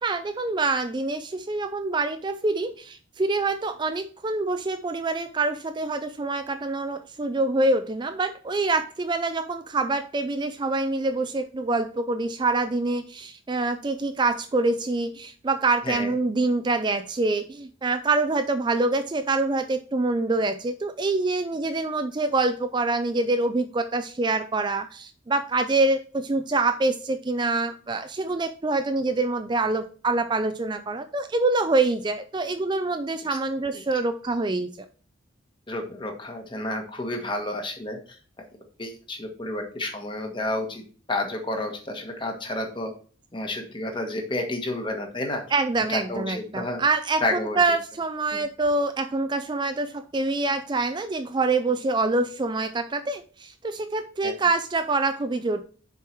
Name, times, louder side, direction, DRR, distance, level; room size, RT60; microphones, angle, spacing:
voice 1, 0.0-34.7 45.5-55.6, right 3 dB, 25° right, 8 dB, 0.4 m, -25 dB
voice 2, 15.8-16.1 33.3-33.4 35.7-38.2 38.8-42.9 43.3-45.4 45.9-46.8 47.2-47.8 48.3-48.4 54.2-54.3, left 1 dB, 25° left, 3 dB, 1.4 m, -30 dB
6.9 x 4.8 x 4.5 m, 0.41 s
head